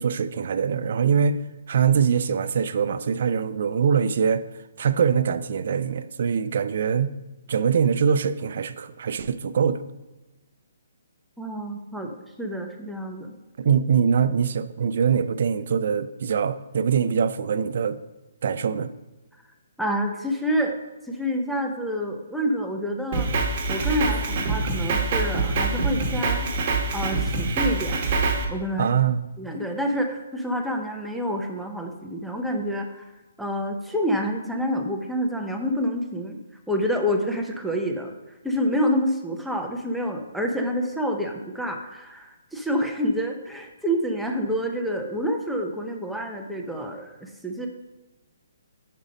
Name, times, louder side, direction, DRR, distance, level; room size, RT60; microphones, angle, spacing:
voice 1, 0.0-1.4 1.7-4.4 4.8-7.1 7.5-9.8 13.6-18.0 18.4-18.9 28.8-29.3, right 7 dB, 55° right, 0.4 m, -23 dB
voice 2, 11.4-13.3 19.8-20.8 21.1-23.3 23.7-26.5 26.9-28.0 28.5-28.9 29.4-33.1 33.4-36.4 36.7-38.1 38.4-47.7, equal, ahead, 0.5 m, -28 dB
Drum kit, 23.1-28.4, right 3 dB, 35° right, 1.0 m, -25 dB
5.5 x 5.0 x 5.0 m
hypercardioid pair, 160°, 0 cm